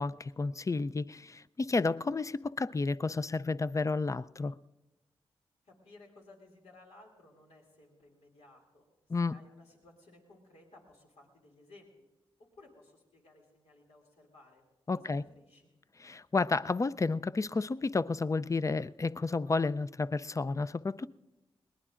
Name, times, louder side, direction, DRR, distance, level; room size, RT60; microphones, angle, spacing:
voice 1, 0.0-4.5 9.1-9.4 14.9-15.2 16.0-21.1, left 3 dB, 30° left, 0.4 m, -31 dB
voice 2, 5.6-12.1 12.4-14.6 15.0-15.7, left 2 dB, 85° left, 2.6 m, -58 dB
21.0 x 19.0 x 2.5 m
cardioid pair, 45°, 11 cm